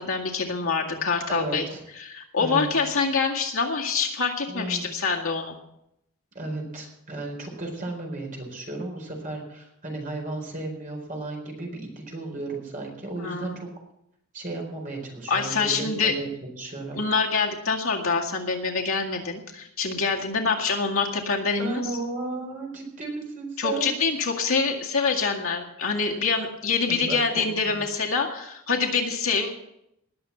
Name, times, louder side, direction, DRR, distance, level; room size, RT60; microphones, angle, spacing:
voice 1, 0.0-1.6 2.0-5.6 13.2-13.6 15.3-16.1 16.9-21.8 23.6-29.5, left 4 dB, 65° left, 0 dB, 2.0 m, -25 dB
voice 2, 1.3-1.8 2.4-2.7 4.5-4.9 6.3-13.7 14.3-17.0 21.5-24.0 26.9-27.5 27.7-27.8, right 2 dB, 35° right, 0 dB, 4.4 m, -34 dB
19.5 x 6.9 x 7.1 m, 0.80 s
head